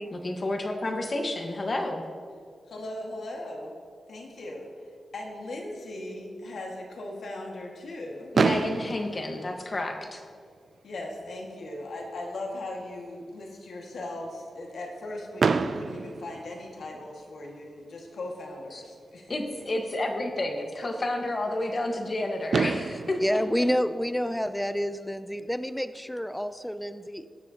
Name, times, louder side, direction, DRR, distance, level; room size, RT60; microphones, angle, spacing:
voice 1, 0.1-2.0 8.3-10.2 18.7-18.8 19.3-23.7, left 2 dB, 40° left, 3 dB, 1.3 m, -30 dB
voice 2, 2.7-3.7 4.1-4.7 5.1-8.3 8.7-8.8 10.8-19.3, left 1 dB, 75° left, 0 dB, 1.8 m, -38 dB
Fireworks, 8.3-10.4 11.2-11.3 11.5-11.7 12.0-12.1 15.4-17.2 18.9-19.0 22.1-22.2 22.5-24.8, right 4 dB, 60° right, 0.4 m, -29 dB
voice 3, 23.2-27.4, equal, 5° left, 12 dB, 0.4 m, -29 dB
19.5 x 7.2 x 2.9 m, 2.1 s
wide cardioid pair, 100°, 0 cm